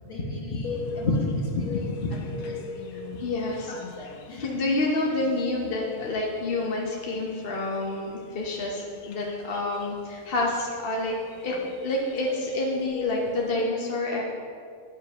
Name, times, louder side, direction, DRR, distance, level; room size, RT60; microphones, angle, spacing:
voice 1, 0.0-1.2 1.5-3.2 3.7-4.4, left 3 dB, 65° left, -4 dB, 2.1 m, -42 dB
sound 1, 0.6-13.5, left 4 dB, 85° left, 1.1 m, -40 dB
voice 2, 3.2-3.7 4.4-11.2 11.4-11.5 11.8-14.2, left 2 dB, 45° left, -2 dB, 1.0 m, -28 dB
9.8 x 5.3 x 5.4 m, 2.3 s
omnidirectional pair, 1.4 m